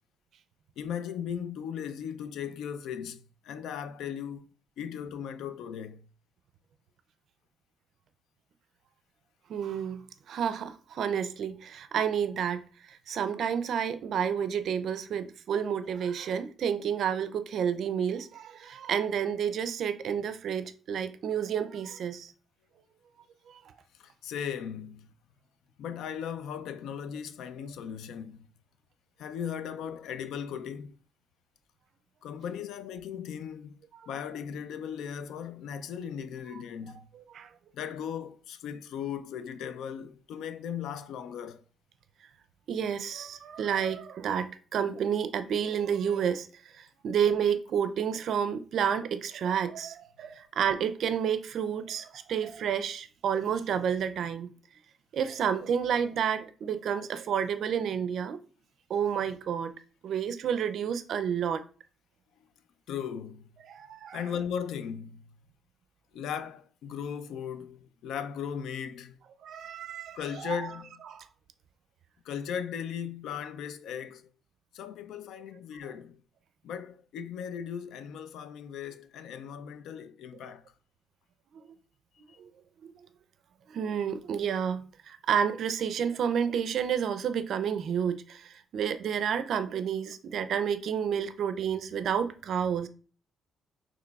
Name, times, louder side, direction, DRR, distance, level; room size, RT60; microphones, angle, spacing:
voice 1, 0.8-4.5 4.8-6.0 16.2-16.3 24.0-25.1 25.8-28.5 29.2-31.0 32.2-33.8 34.1-37.1 37.7-41.6 62.9-63.5 64.1-65.3 66.1-69.2 70.1-71.0 72.2-74.3 74.7-76.2 76.6-80.6 82.3-82.4, left 8 dB, 80° left, 0.3 m, -37 dB
voice 2, 9.5-10.0 10.3-22.3 23.5-23.7 33.9-34.1 36.9-37.5 42.7-46.5 46.7-54.5 55.1-58.4 58.9-59.7 60.0-61.6 63.7-64.2 69.4-70.7 71.1-71.3 80.4-80.5 82.4-82.5 82.8-82.9 83.7-92.9, right 8 dB, 65° right, 0.4 m, -30 dB
5.9 x 3.0 x 2.3 m
cardioid pair, 90°, 0 cm